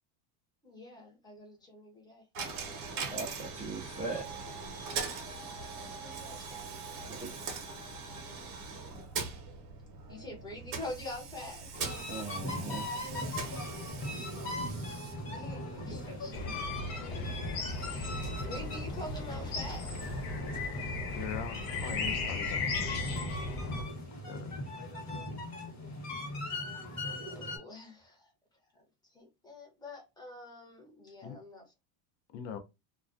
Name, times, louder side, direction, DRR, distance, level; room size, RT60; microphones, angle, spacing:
voice 1, 0.6-2.2 5.7-6.6 10.1-11.7 15.3-17.4 17.9-19.9 24.7-24.8 27.0-28.3 28.7-28.8 29.1-31.7, left 2 dB, 10° left, 0.8 m, -46 dB
Coin (dropping), 2.3-19.3, right 4 dB, 45° right, 0.8 m, -42 dB
voice 2, 3.1-4.3 7.0-7.3 12.1-12.9, right 3 dB, 15° right, 0.3 m, -39 dB
sound 1, 11.7-27.6, left 1 dB, 35° left, 1.1 m, -40 dB
sound 2, 16.3-23.8, left 3 dB, 60° left, 1.1 m, -36 dB
voice 3, 21.1-23.0 24.3-24.6 31.2-31.4 32.3-32.6, left 8 dB, 90° left, 0.7 m, -41 dB
2.3 x 2.2 x 2.4 m
supercardioid pair, 125°, 48 cm